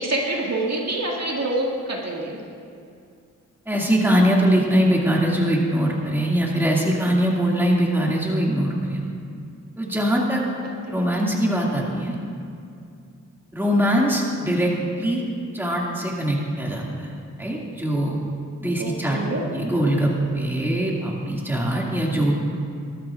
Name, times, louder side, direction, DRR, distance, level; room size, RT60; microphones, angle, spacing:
voice 1, 0.0-2.4 10.6-11.1 18.8-19.4, right 2 dB, 55° right, -2 dB, 2.0 m, -27 dB
voice 2, 3.7-9.0 9.8-10.4 10.9-12.1 13.5-15.2 15.5-17.1 17.4-18.2 18.6-19.2 19.5-22.4, equal, 5° right, -3 dB, 2.3 m, -22 dB
20.0 x 12.5 x 2.5 m, 2.4 s
cardioid pair, 75°, 32 cm